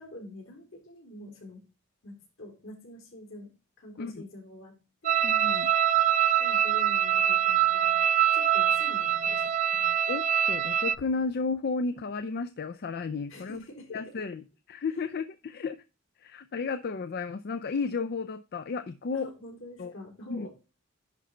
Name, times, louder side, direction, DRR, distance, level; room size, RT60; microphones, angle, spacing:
voice 1, 0.0-1.6 2.0-3.5 3.8-4.7 5.0-5.2 6.4-8.0 8.3-9.9 13.3-14.0 19.1-20.5, left 1 dB, 70° left, 0 dB, 3.9 m, -46 dB
sound 1, 5.0-11.0, right 10 dB, 35° right, 0.3 m, -24 dB
voice 2, 5.2-5.7 10.1-13.6 13.9-15.8 16.2-19.3 19.8-19.9 20.3-20.5, left 4 dB, 50° left, 10 dB, 0.4 m, -33 dB
10.5 x 3.8 x 4.3 m, 0.31 s
head